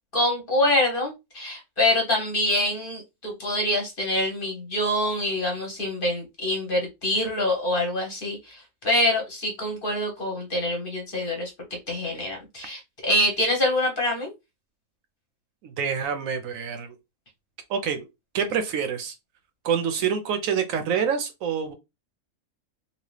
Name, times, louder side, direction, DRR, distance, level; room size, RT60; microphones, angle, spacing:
voice 1, 0.1-11.5 11.9-14.3, left 1 dB, 45° left, 1.0 m, -25 dB
voice 2, 15.6-17.0 17.7-18.1 18.3-19.1 19.6-21.7, right 7 dB, 70° right, 0.9 m, -26 dB
2.9 x 2.7 x 3.1 m
omnidirectional pair, 1.5 m